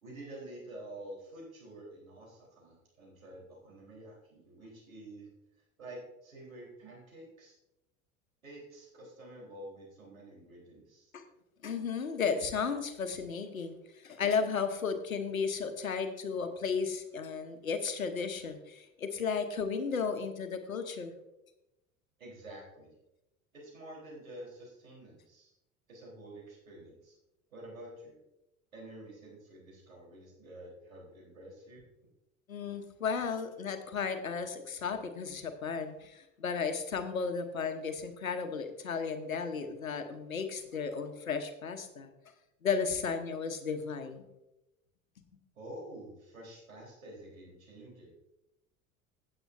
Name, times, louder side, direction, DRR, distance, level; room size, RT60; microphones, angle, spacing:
voice 1, 0.0-5.3 5.8-7.6 8.4-11.1 22.2-22.9 23.5-25.5 25.9-27.1 27.5-28.2 28.7-31.8 45.6-48.1, right 1 dB, 75° right, -3 dB, 3.9 m, -49 dB
voice 2, 11.6-13.8 14.0-21.1 32.5-42.1 42.6-44.3, left 5 dB, 80° left, 8 dB, 1.1 m, -34 dB
16.0 x 7.8 x 2.6 m, 0.91 s
figure-of-eight pair, 70°, 41 cm